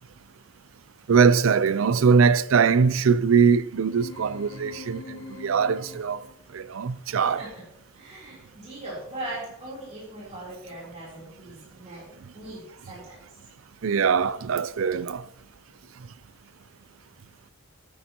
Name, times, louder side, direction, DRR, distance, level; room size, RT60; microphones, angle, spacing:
voice 1, 1.1-6.3 6.5-7.4 13.8-15.3, right 6 dB, 80° right, 0.4 m, -21 dB
sound 1, 3.8-6.4, left 2 dB, 80° left, 2.4 m, -42 dB
voice 2, 7.2-7.6 7.9-13.2, right 1 dB, 35° right, 3.5 m, -40 dB
12.5 x 9.3 x 2.9 m
head